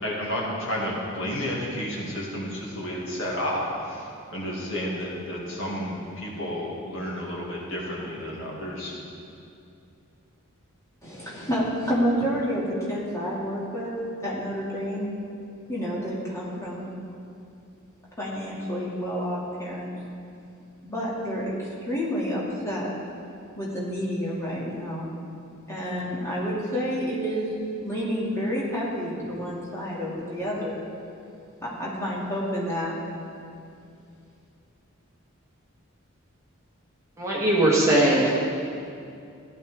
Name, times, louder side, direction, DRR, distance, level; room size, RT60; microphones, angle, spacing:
voice 1, 0.0-8.9, equal, 65° left, -4 dB, 2.2 m, -31 dB
voice 2, 11.0-13.9 14.2-15.1 15.7-17.0 18.2-19.9 20.8-22.9 23.6-25.1 25.7-27.5 27.8-30.8 31.6-32.9, equal, 15° left, -7 dB, 2.3 m, -29 dB
voice 3, 37.2-38.5, right 1 dB, 15° right, -5 dB, 1.6 m, -20 dB
15.0 x 10.5 x 3.6 m, 2.5 s
head